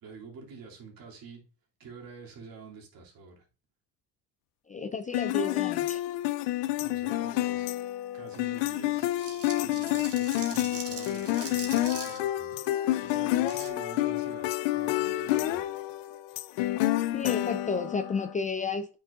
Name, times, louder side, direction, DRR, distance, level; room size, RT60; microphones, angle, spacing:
voice 1, 0.0-1.4 1.8-3.5 6.8-7.7 8.1-9.1 9.6-12.6 13.0-15.7, right 5 dB, 50° right, 2.7 m, -47 dB
voice 2, 4.7-6.0 17.1-19.0, left 4 dB, 20° left, 0.4 m, -32 dB
sound 1, 5.1-18.3, left 15 dB, 75° left, 0.6 m, -29 dB
sound 2, 9.0-12.2 13.4-13.7, right 5 dB, 35° right, 1.9 m, -42 dB
8.9 x 5.5 x 2.5 m
supercardioid pair, 95°, 43 cm